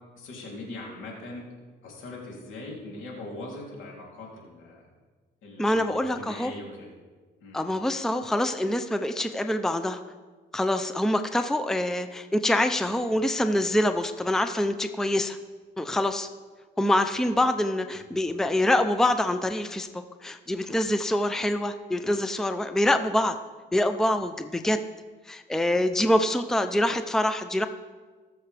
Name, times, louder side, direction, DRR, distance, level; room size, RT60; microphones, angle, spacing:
voice 1, 0.2-1.5 1.8-4.9 5.4-6.9 7.4-7.6 17.1-17.3 18.1-18.2, left 2 dB, 75° left, -2 dB, 3.1 m, -41 dB
voice 2, 5.6-6.5 7.5-10.0 10.5-15.4 15.8-16.3 16.8-23.4 23.7-24.8 25.3-27.7, left 1 dB, ahead, 8 dB, 0.5 m, -25 dB
18.5 x 7.0 x 3.4 m, 1.4 s
cardioid pair, 90°, 20 cm